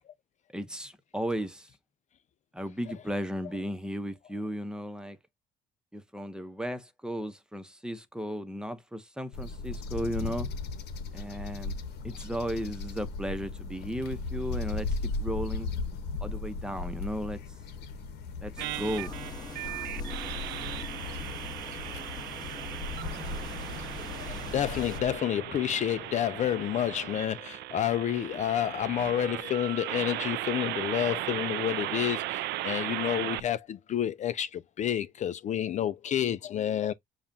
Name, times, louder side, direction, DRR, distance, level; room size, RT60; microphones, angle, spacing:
voice 1, 0.5-1.7 2.5-5.2 5.9-10.5 11.1-11.8 12.0-15.7 16.2-17.4 18.4-19.2, equal, 5° right, 0.9 m, -35 dB
sound 1, 9.3-25.2, left 3 dB, 75° left, 1.1 m, -37 dB
sound 2, 18.6-25.0, left 4 dB, 25° left, 1.4 m, -43 dB
sound 3, 18.6-33.4, right 16 dB, 80° right, 0.5 m, -37 dB
voice 2, 24.1-36.9, left 10 dB, 45° left, 0.4 m, -29 dB
7.2 x 2.4 x 2.8 m
cardioid pair, 110°, 17 cm